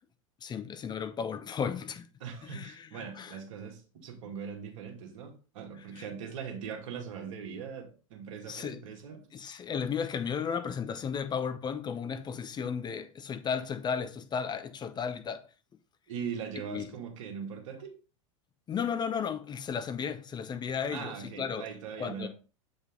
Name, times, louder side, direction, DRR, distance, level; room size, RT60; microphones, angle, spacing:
voice 1, 0.4-2.1 2.4-3.4 5.9-6.1 8.5-8.8 9.3-15.5 16.7-16.9 18.7-21.7 22.0-22.3, left 7 dB, 25° left, 0.8 m, -34 dB
voice 2, 2.2-9.3 16.1-18.0 20.9-22.3, right 7 dB, 65° right, 2.3 m, -41 dB
8.3 x 5.2 x 3.8 m
hypercardioid pair, 95°, 17 cm